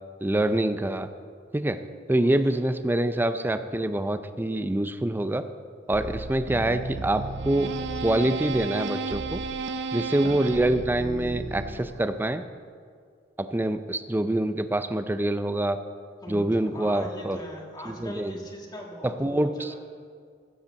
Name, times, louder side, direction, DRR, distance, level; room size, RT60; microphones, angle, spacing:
voice 1, 0.2-1.1 1.5-1.8 2.1-5.4 5.9-7.7 8.0-9.4 9.9-12.4 13.4-15.8 16.3-17.4 17.9-18.4 19.0-19.8, right 1 dB, 10° right, 10 dB, 0.4 m, -25 dB
voice 2, 2.2-2.7 16.2-19.8, equal, 20° left, 0 dB, 1.6 m, -41 dB
sound 1, 5.9-12.2, right 3 dB, 65° right, 0.6 m, -33 dB
15.5 x 5.4 x 7.1 m, 2.1 s
head